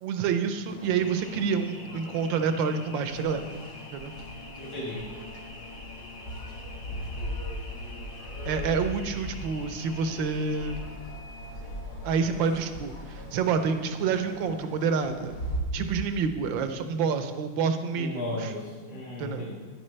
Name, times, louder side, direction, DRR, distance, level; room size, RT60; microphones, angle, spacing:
voice 1, 0.0-3.5 3.9-4.2 8.4-10.8 12.0-15.3 15.7-18.5 19.2-19.5, right 5 dB, 70° right, 8 dB, 1.4 m, -28 dB
sound 1, 0.7-15.6, left 1 dB, 60° left, 2.2 m, -39 dB
voice 2, 4.6-5.1 17.9-19.5, left 1 dB, 75° left, -7 dB, 2.6 m, -35 dB
10.5 x 9.8 x 3.2 m, 1.4 s
omnidirectional pair, 2.3 m